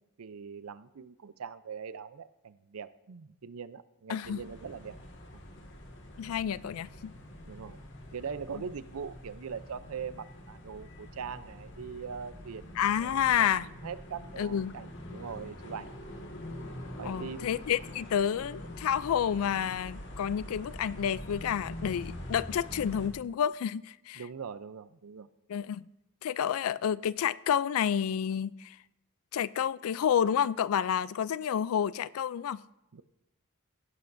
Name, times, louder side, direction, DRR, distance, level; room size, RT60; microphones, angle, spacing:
voice 1, 0.2-5.0 7.5-7.8 8.1-15.9 17.0-17.5 24.2-25.3 32.9-33.0, right 6 dB, 80° right, 0.5 m, -42 dB
voice 2, 4.1-4.4 6.2-7.1 8.5-8.6 12.8-13.7 14.4-14.8 17.0-24.2 25.5-25.9 26.2-28.8 29.3-32.6, left 8 dB, 70° left, 0.3 m, -29 dB
sound 1, 4.2-23.1, left 1 dB, 55° left, 1.7 m, -45 dB
16.5 x 11.0 x 2.6 m
head